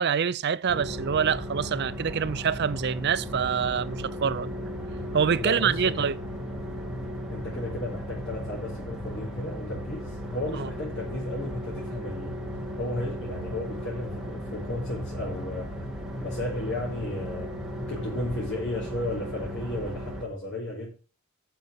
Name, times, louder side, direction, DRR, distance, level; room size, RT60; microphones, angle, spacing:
voice 1, 0.0-4.5 5.1-6.2 10.6-10.7, right 7 dB, 50° right, 0.5 m, -26 dB
sound 1, 0.7-20.2, equal, 5° right, 1.9 m, -36 dB
voice 2, 5.4-5.9 7.3-12.4 12.8-15.8 16.2-20.9, left 1 dB, 55° left, 4.3 m, -34 dB
10.5 x 6.6 x 6.9 m
head